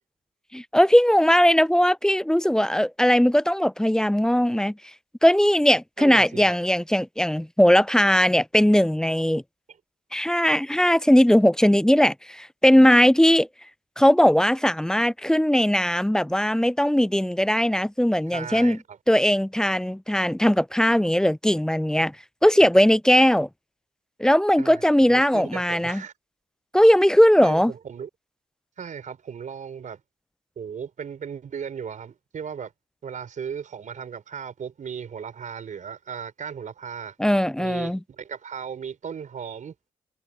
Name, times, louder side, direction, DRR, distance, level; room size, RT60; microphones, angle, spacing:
voice 1, 0.5-4.7 5.2-9.4 10.1-13.5 14.0-18.8 19.1-22.1 22.4-23.5 24.2-26.0 26.7-27.7 37.2-38.0, equal, 5° left, 0.4 m, -19 dB
voice 2, 6.0-6.6 9.7-9.8 18.3-19.0 24.6-24.8 25.1-26.1 27.4-28.1 28.8-30.0 30.5-32.7 33.0-37.2 37.6-39.7, right 7 dB, 60° right, 5.2 m, -36 dB
hypercardioid pair, 45°, 15 cm